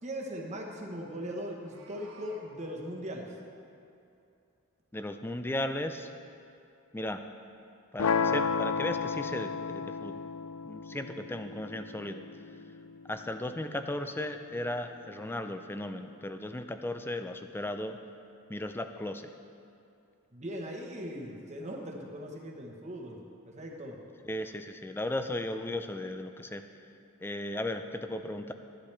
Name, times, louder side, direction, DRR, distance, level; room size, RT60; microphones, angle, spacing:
voice 1, 0.0-3.3 20.3-23.2 23.4-24.0, equal, 30° right, 0 dB, 1.1 m, -39 dB
Meow, 1.4-2.5, right 4 dB, 70° right, 1.5 m, -55 dB
voice 2, 4.9-6.1 6.9-7.2 7.9-10.3 10.6-12.2 13.1-18.0 18.5-19.3 24.2-26.6 27.2-28.5, left 1 dB, 10° left, 8 dB, 0.4 m, -36 dB
sound 1, 8.0-14.0, left 5 dB, 80° left, 0.4 m, -33 dB
12.0 x 11.5 x 3.3 m, 2.6 s
head